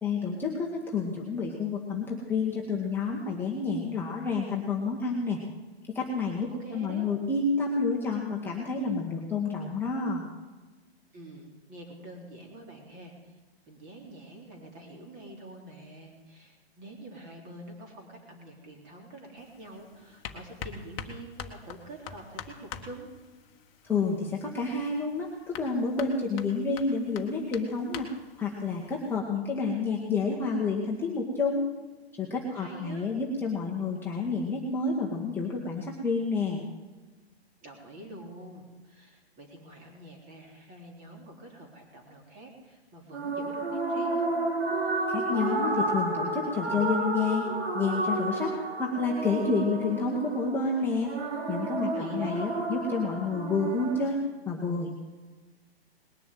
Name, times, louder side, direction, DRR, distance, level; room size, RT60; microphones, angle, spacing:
voice 1, 0.0-5.4 5.9-10.2 23.8-28.1 28.4-31.7 32.2-36.6 45.1-47.4 47.7-48.5 48.8-51.1 51.5-54.9, left 4 dB, 5° left, -3 dB, 1.5 m, -29 dB
voice 2, 6.5-7.1 11.1-13.4 13.7-23.1 32.5-33.1 37.6-44.3 51.8-52.4, right 2 dB, 25° right, 2 dB, 3.6 m, -46 dB
sound 1, 19.4-29.2, left 7 dB, 30° left, 1.4 m, -45 dB
sound 2, 43.1-54.1, right 2 dB, 75° right, 3.3 m, -31 dB
20.0 x 6.9 x 9.1 m, 1.3 s
hypercardioid pair, 140°, 32 cm